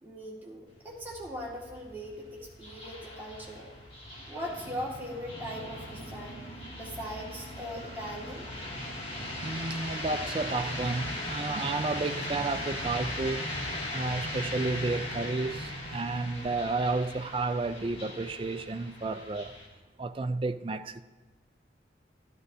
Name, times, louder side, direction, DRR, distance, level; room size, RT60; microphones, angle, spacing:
voice 1, 0.0-3.7 4.3-6.4 6.7-8.5, equal, 10° right, 1.9 m, -40 dB
sound 1, 0.7-19.7, left 1 dB, 30° left, 2.2 m, -38 dB
voice 2, 9.4-13.5 13.9-19.6 20.0-21.0, right 3 dB, 30° right, 0.3 m, -31 dB
13.5 x 13.0 x 2.7 m
head